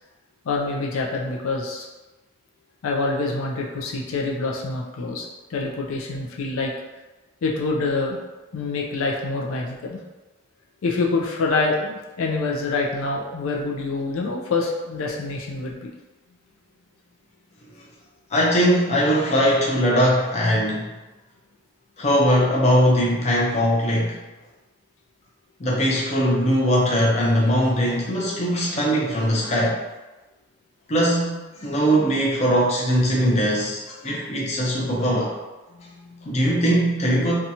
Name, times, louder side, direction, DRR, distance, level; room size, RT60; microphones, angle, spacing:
voice 1, 0.5-1.8 2.8-6.7 7.4-8.2 8.5-10.0 10.8-15.9 35.7-36.3, left 3 dB, 85° left, -1 dB, 0.4 m, -26 dB
voice 2, 18.3-20.9 22.0-24.2 25.6-29.8 30.9-31.3 31.6-35.4 36.3-37.3, equal, 30° left, -4 dB, 0.5 m, -20 dB
2.7 x 2.3 x 2.7 m, 1.1 s
head